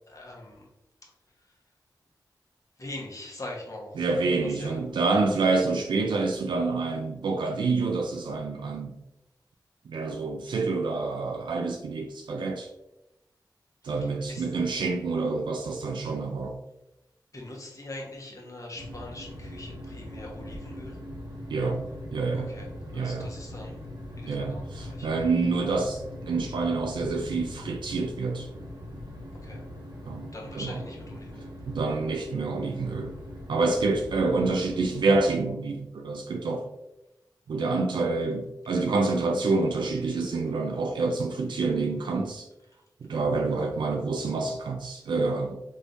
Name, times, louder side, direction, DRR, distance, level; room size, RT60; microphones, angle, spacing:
voice 1, 0.1-0.7 1.0-1.1 2.8-4.1 4.4-4.8 13.8-14.5 17.3-21.0 21.6-21.8 22.3-22.7 22.9-23.8 24.1-25.3 29.3-29.6 30.3-31.5, left 1 dB, 45° left, 1.1 m, -42 dB
voice 2, 4.0-9.0 9.9-12.7 13.8-16.6 21.5-21.8 22.1-22.5 22.9-23.3 24.3-28.5 30.1-30.7 31.7-33.1 33.5-36.7 37.5-42.5 43.0-45.6, right 3 dB, 85° right, 0.4 m, -27 dB
sound 1, 18.7-35.3, left 1 dB, 65° right, 1.1 m, -41 dB
3.3 x 3.1 x 2.6 m
cardioid pair, 50°, 8 cm